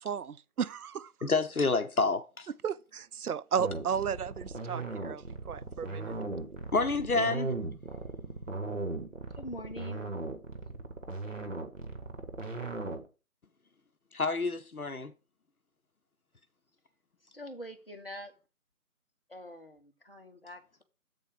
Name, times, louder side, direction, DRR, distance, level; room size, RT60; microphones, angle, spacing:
voice 1, 0.0-1.3 2.6-6.1, right 7 dB, 80° right, 0.6 m, -34 dB
voice 2, 1.2-2.5 6.7-7.6 14.1-15.1, left 3 dB, 70° left, 0.9 m, -28 dB
sound 1, 3.6-13.1, right 3 dB, 60° right, 1.6 m, -37 dB
voice 3, 9.4-10.1 17.2-18.3 19.3-20.8, equal, 40° left, 1.2 m, -44 dB
7.7 x 4.3 x 4.9 m
figure-of-eight pair, 165°, 44 cm